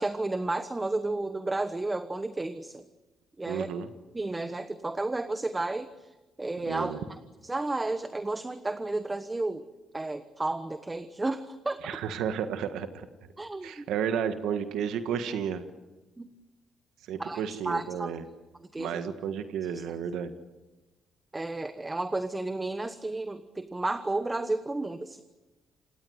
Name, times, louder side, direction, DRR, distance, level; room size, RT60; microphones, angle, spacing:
voice 1, 0.0-2.9 3.4-3.7 4.1-6.1 6.4-9.7 9.9-11.9 13.4-13.9 16.2-16.3 17.2-18.1 18.7-19.0 21.3-25.2, right 2 dB, 20° right, 11 dB, 1.1 m, -32 dB
voice 2, 3.5-3.9 6.7-7.0 11.8-13.1 13.6-15.6 17.1-18.2 18.8-20.3, right 8 dB, 85° right, 9 dB, 1.5 m, -32 dB
26.5 x 20.5 x 8.0 m, 1.1 s
cardioid pair, 90°, 0 cm